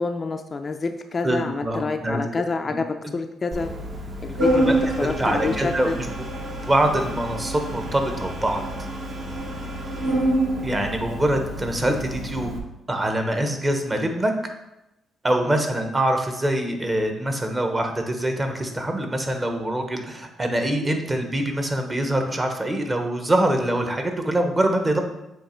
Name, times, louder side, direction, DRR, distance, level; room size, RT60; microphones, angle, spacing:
voice 1, 0.0-2.8 3.1-3.7 4.2-5.9 10.0-10.3, left 4 dB, 35° left, 6 dB, 0.4 m, -27 dB
voice 2, 1.2-2.2 2.7-2.8 4.7-6.1 6.6-8.6 10.6-12.5 12.9-14.3 15.2-25.0, right 1 dB, 20° right, 5 dB, 0.9 m, -24 dB
Organ, 3.5-12.6, right 1 dB, 50° right, 1.1 m, -27 dB
7.7 x 3.0 x 4.3 m, 0.91 s
cardioid pair, 105°, 0 cm